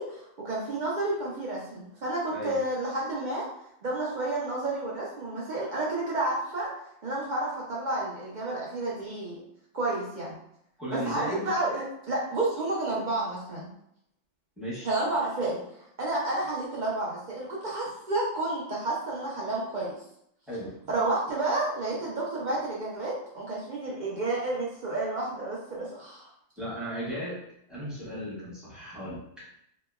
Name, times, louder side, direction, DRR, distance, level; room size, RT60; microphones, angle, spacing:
voice 1, 0.0-3.5 3.8-6.7 7.0-9.4 9.7-10.4 10.9-13.7 14.8-20.0 20.9-26.3, right 2 dB, 60° right, -5 dB, 0.5 m, -30 dB
voice 2, 10.8-11.5 14.6-14.9 20.5-20.7 26.6-27.4 27.7-29.2, equal, ahead, -9 dB, 0.8 m, -36 dB
2.9 x 2.1 x 2.2 m, 0.75 s
omnidirectional pair, 1.2 m